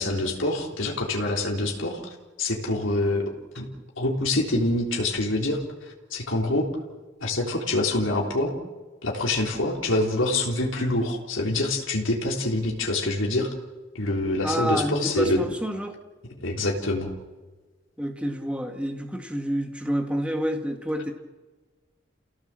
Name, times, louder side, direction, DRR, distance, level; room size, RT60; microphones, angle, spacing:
voice 1, 0.0-2.0 2.4-3.2 3.5-3.7 4.0-5.6 6.1-6.7 7.2-8.5 9.0-13.5 14.0-15.4 16.4-17.1, left 2 dB, 80° left, 0 dB, 3.7 m, -25 dB
voice 2, 14.4-16.0 18.0-21.1, equal, 5° right, 4 dB, 1.9 m, -28 dB
29.5 x 17.0 x 7.6 m, 1.3 s
head